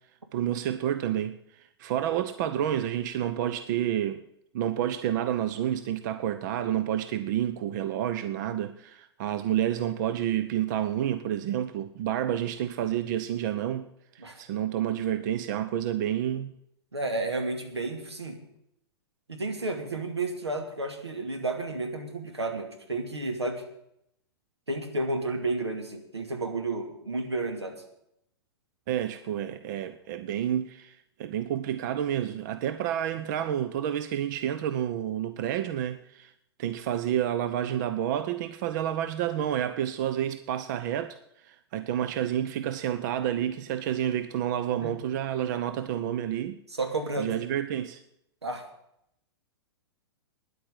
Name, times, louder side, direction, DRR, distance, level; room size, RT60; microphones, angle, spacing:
voice 1, 0.3-4.2 4.5-13.9 14.1-16.5 28.9-36.3 36.6-46.6 47.2-48.0, right 11 dB, 45° right, 0.7 m, -29 dB
voice 2, 16.9-18.4 19.3-23.6 24.7-27.8 44.8-44.9 46.7-47.3 48.4-48.7, right 2 dB, 85° right, 2.5 m, -32 dB
10.5 x 8.6 x 9.8 m
figure-of-eight pair, 105°, 14 cm